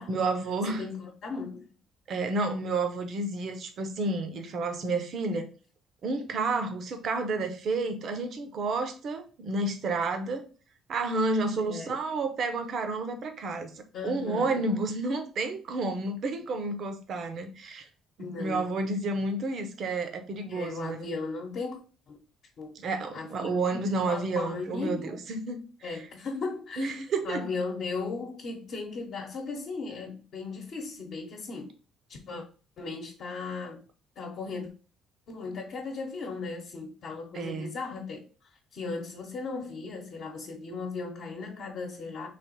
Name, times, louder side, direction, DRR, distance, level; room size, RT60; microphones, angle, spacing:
voice 1, 0.1-0.8 2.1-5.5 6.0-10.5 10.9-13.7 14.0-17.9 18.2-21.0 22.8-25.6 26.8-27.5 37.3-37.7, right 3 dB, 45° right, 0.7 m, -30 dB
voice 2, 0.7-1.6 11.6-11.9 13.9-14.6 18.2-18.7 20.5-21.8 22.1-22.2 22.6-22.7 23.1-25.1 25.8-26.9 27.2-31.7 32.1-32.4 32.8-33.8 34.2-34.7 35.3-38.2 38.7-42.3, left 4 dB, 50° left, 1.0 m, -36 dB
3.4 x 3.1 x 4.5 m
cardioid pair, 145°, 0 cm